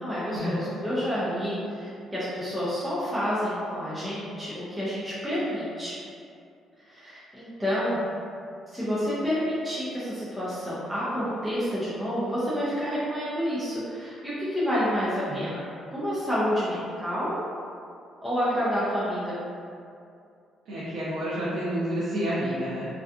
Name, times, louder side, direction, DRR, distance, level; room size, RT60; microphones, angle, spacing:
voice 1, 0.0-5.9 6.9-8.0 8.7-15.6 15.9-17.3 18.2-19.4, equal, 5° right, -11 dB, 0.4 m, -29 dB
voice 2, 20.7-22.9, equal, 75° right, -10 dB, 0.6 m, -29 dB
2.6 x 2.3 x 2.3 m, 2.4 s
cardioid pair, 170°, 0 cm